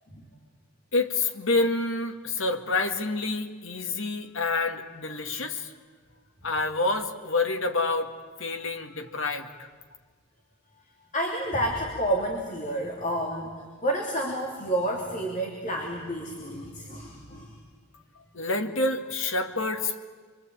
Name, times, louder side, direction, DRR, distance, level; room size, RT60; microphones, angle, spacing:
voice 1, 0.9-5.7 6.4-8.1 8.4-9.5 18.3-20.0, left 3 dB, 60° left, 5 dB, 2.1 m, -28 dB
voice 2, 11.1-17.6, right 1 dB, 35° left, 0 dB, 3.1 m, -30 dB
27.0 x 24.5 x 8.9 m, 1.5 s
head